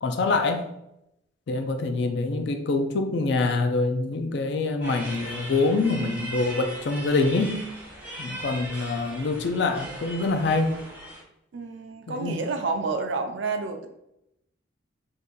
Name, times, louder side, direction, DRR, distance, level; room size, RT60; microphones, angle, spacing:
voice 1, 0.0-0.7 1.5-7.7 8.2-10.8 12.1-12.4, left 3 dB, 60° left, 6 dB, 0.4 m, -25 dB
sound 1, 4.8-11.2, right 1 dB, 10° right, 0.6 m, -39 dB
voice 2, 11.5-13.9, right 4 dB, 65° right, 6 dB, 0.4 m, -29 dB
2.7 x 2.5 x 3.7 m, 0.82 s
head